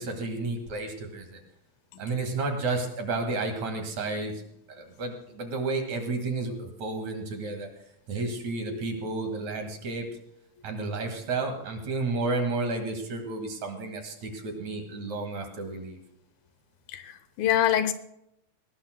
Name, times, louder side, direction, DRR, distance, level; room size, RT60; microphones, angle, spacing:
voice 1, 0.0-1.4 2.0-4.3 4.7-7.7 8.1-10.1 10.6-16.0, right 3 dB, 55° right, 4 dB, 3.0 m, -31 dB
voice 2, 16.9-17.9, left 11 dB, 90° left, 11 dB, 2.8 m, -25 dB
21.0 x 18.5 x 2.2 m, 0.77 s
omnidirectional pair, 4.2 m